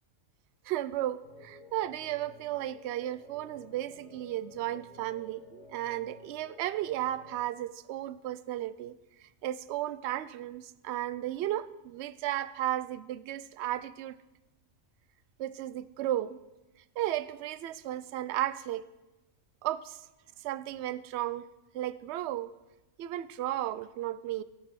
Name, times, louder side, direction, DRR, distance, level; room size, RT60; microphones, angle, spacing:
voice 1, 0.6-14.2 15.4-16.4 17.0-18.8 19.6-20.0 20.4-21.5 21.7-22.5 23.0-24.4, right 13 dB, 65° right, 15 dB, 0.8 m, -34 dB
sound 1, 1.2-7.4, left 2 dB, 60° left, 1.7 m, -53 dB
17.0 x 6.0 x 6.3 m, 1.0 s
omnidirectional pair, 1.3 m